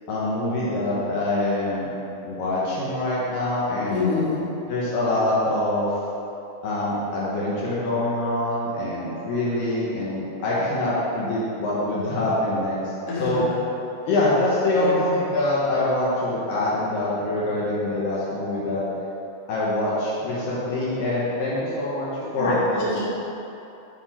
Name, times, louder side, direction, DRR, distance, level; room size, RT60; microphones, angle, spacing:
voice 1, 0.1-1.9 2.2-4.3 4.7-5.9 6.6-12.9 13.2-13.5 14.1-18.8 19.5-22.8, left 1 dB, 70° left, -8 dB, 2.1 m, -24 dB
voice 2, 3.9-4.4 13.1-13.4 14.7-15.2 22.4-23.0, left 3 dB, 90° left, -8 dB, 1.4 m, -26 dB
9.2 x 5.4 x 4.5 m, 2.9 s
omnidirectional pair, 5.8 m